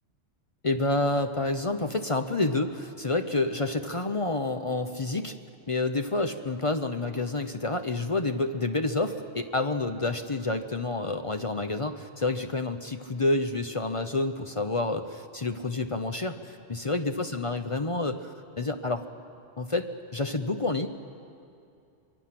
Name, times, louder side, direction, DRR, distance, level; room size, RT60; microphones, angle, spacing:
voice 1, 0.6-5.3 5.7-19.0 19.6-20.9, left 2 dB, 35° left, 7 dB, 0.7 m, -29 dB
25.0 x 22.0 x 5.9 m, 2.6 s
omnidirectional pair, 1.2 m